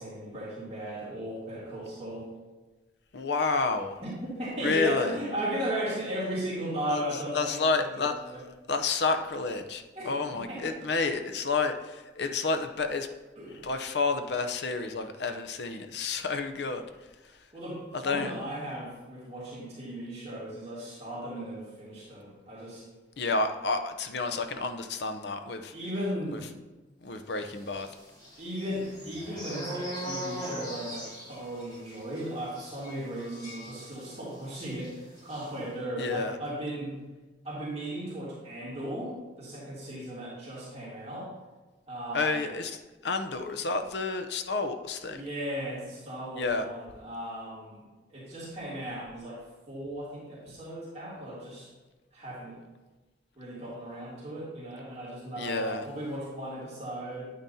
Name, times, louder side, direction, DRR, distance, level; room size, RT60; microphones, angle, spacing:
voice 1, 0.0-2.3 4.0-8.4 10.0-10.7 13.4-13.6 17.5-22.8 25.7-26.4 28.4-34.9 35.2-37.0 37.4-41.3 41.9-42.5 45.1-47.8 48.1-49.4 49.7-51.7 52.1-52.6 53.4-57.3, right 1 dB, 35° right, -8 dB, 2.7 m, -36 dB
voice 2, 3.1-4.0 4.6-5.2 6.9-7.0 7.3-8.3 8.7-13.1 13.6-16.8 17.9-18.3 23.2-25.7 26.3-26.4 27.0-27.9 36.0-36.3 42.1-45.2 46.3-46.6 55.4-55.8, left 3 dB, 65° left, 8 dB, 0.7 m, -30 dB
sound 1, 27.7-34.4 34.7-34.9 35.2-35.5, equal, 25° left, 2.2 m, -40 dB
9.1 x 8.7 x 2.7 m, 1.2 s
head